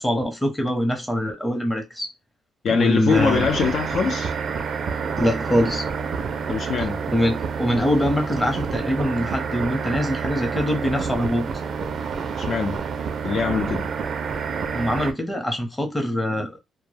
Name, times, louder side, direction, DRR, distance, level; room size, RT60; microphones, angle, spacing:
voice 1, 0.0-2.1 2.7-3.5 5.2-5.9 7.1-11.5 14.7-16.6, equal, 10° left, 0.8 m, -23 dB
voice 2, 2.6-4.3 6.5-7.0 12.4-12.8 13.2-13.9, left 6 dB, 60° left, 0.4 m, -23 dB
sound 1, 3.1-15.1, right 6 dB, 55° right, 0.4 m, -28 dB
2.2 x 2.1 x 3.2 m
cardioid pair, 90°, 0 cm